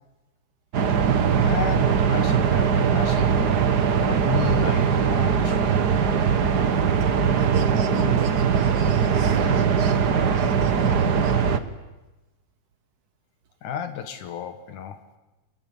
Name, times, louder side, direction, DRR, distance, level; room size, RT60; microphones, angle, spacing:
sound 1, 0.7-11.6, right 6 dB, 50° right, 1.2 m, -21 dB
voice 1, 1.4-5.9 13.6-15.0, left 8 dB, 75° left, 8 dB, 3.0 m, -33 dB
voice 2, 7.4-10.0 10.4-11.4, right 6 dB, 75° right, 6 dB, 3.9 m, -38 dB
28.0 x 21.5 x 9.8 m, 1.0 s
omnidirectional pair, 3.6 m